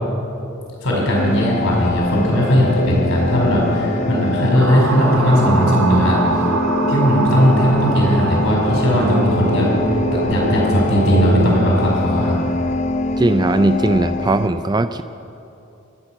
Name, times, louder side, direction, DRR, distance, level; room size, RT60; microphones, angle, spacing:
voice 1, 0.8-6.2 6.9-9.7 10.2-12.4, equal, 85° left, -2 dB, 4.9 m, -17 dB
sound 1, 1.1-14.5, left 2 dB, 35° left, 0.6 m, -24 dB
sound 2, 1.9-11.5, right 3 dB, 85° right, 1.0 m, -25 dB
voice 2, 13.2-15.0, right 2 dB, 20° right, 10 dB, 0.4 m, -18 dB
25.0 x 9.0 x 6.0 m, 2.7 s
head